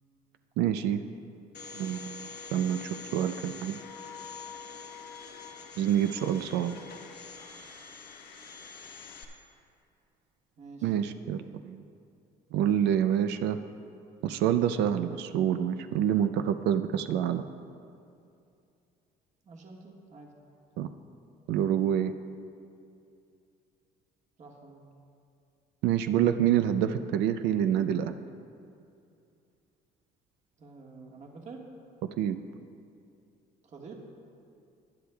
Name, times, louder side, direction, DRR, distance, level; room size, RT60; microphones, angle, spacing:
voice 1, 0.6-1.0 1.7-3.8 5.8-6.7 10.8-11.8 12.5-13.6 14.2-17.4 20.8-20.9 21.5-22.1 25.8-28.2 32.2-32.4, right 10 dB, 85° right, 9 dB, 0.5 m, -27 dB
Domestic sounds home sounds, 1.5-9.2, left 5 dB, 75° left, 1.2 m, -45 dB
voice 2, 10.6-10.9 19.4-20.4 24.4-24.9 30.6-31.7 33.6-34.0, right 4 dB, 45° right, 0 dB, 1.5 m, -48 dB
19.0 x 10.0 x 2.3 m, 2.5 s
cardioid pair, 110°, 17 cm